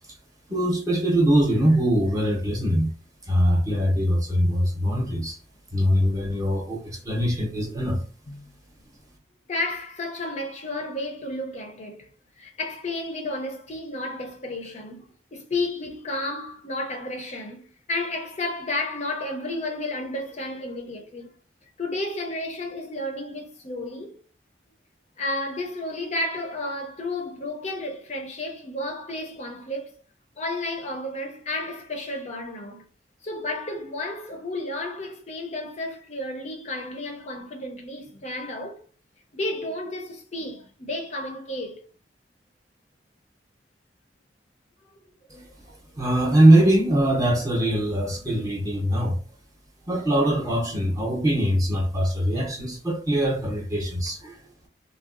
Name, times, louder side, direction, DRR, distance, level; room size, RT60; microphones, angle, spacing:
voice 1, 0.5-2.9 3.3-5.4 5.7-8.0 45.3-49.2 49.9-54.4, right 1 dB, 20° right, 0.7 m, -22 dB
voice 2, 9.5-12.1 12.4-21.3 21.8-24.2 25.2-29.9 30.4-32.8 33.2-38.8 39.3-41.8, left 2 dB, 40° left, 0.5 m, -32 dB
3.5 x 2.2 x 2.4 m
head